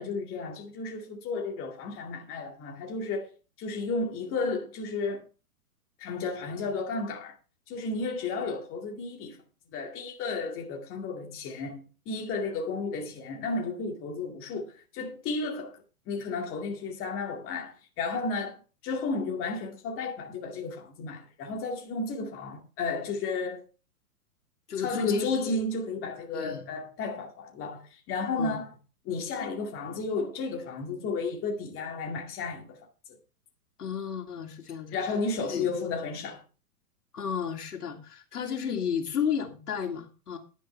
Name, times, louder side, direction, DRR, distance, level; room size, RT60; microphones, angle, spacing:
voice 1, 0.0-3.3 3.6-5.3 6.0-7.4 7.7-9.4 9.7-23.6 24.8-28.7 29.0-32.8 33.1-33.2 34.9-36.4, left 3 dB, 30° left, 2.3 m, -33 dB
voice 2, 24.7-25.3 26.3-26.7 28.4-28.6 33.8-34.9 35.5-35.7 37.1-40.4, left 7 dB, 80° left, 2.7 m, -32 dB
11.0 x 9.9 x 3.4 m
hypercardioid pair, 125°, 45 cm